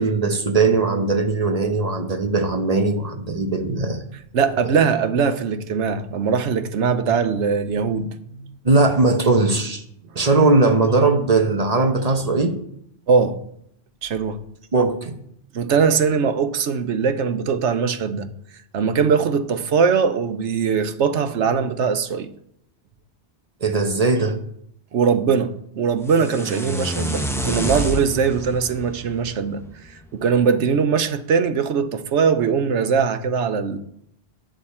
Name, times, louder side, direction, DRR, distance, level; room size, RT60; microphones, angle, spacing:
voice 1, 0.0-4.0 4.6-4.7 8.6-9.8 10.1-12.6 14.7-15.2 23.6-24.4, right 3 dB, 35° right, 1.0 m, -19 dB
voice 2, 4.3-8.5 13.1-13.4 14.0-14.4 15.5-18.3 18.7-22.3 24.9-29.6 30.1-33.8, right 6 dB, 85° right, 1.1 m, -21 dB
sound 1, 26.0-30.1, equal, 5° left, 0.8 m, -28 dB
10.5 x 8.3 x 4.3 m
omnidirectional pair, 1.1 m